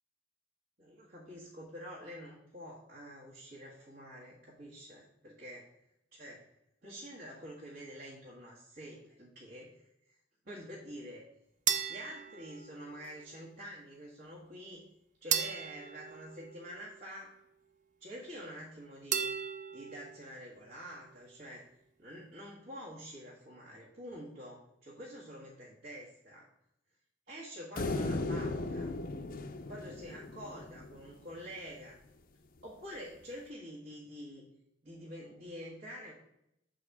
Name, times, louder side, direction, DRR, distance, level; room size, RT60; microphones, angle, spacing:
voice 1, 0.8-5.6 6.1-6.4 6.8-10.2 10.4-11.2 11.9-14.8 15.2-17.3 18.0-19.3 19.7-21.6 22.0-26.5 27.3-28.9 29.7-32.0 32.6-34.4 34.8-36.1, equal, 55° right, -6 dB, 1.7 m, -47 dB
sound 1, 11.7-13.2 15.3-17.1 19.1-20.2, right 8 dB, 40° right, 0.5 m, -36 dB
sound 2, 27.8-31.1, left 2 dB, 45° left, 0.5 m, -36 dB
7.3 x 4.1 x 4.7 m, 0.80 s
head